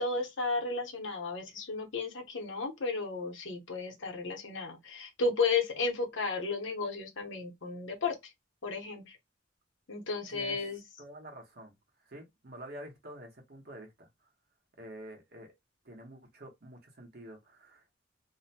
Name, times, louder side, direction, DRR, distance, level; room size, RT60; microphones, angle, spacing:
voice 1, 0.0-8.1 8.6-9.2 9.9-10.8, left 4 dB, 70° left, 0.9 m, -33 dB
voice 2, 10.3-10.7 11.0-11.7 12.0-14.3 14.8-15.5 15.8-18.0, right 1 dB, 55° right, 1.0 m, -48 dB
2.7 x 2.1 x 2.7 m
head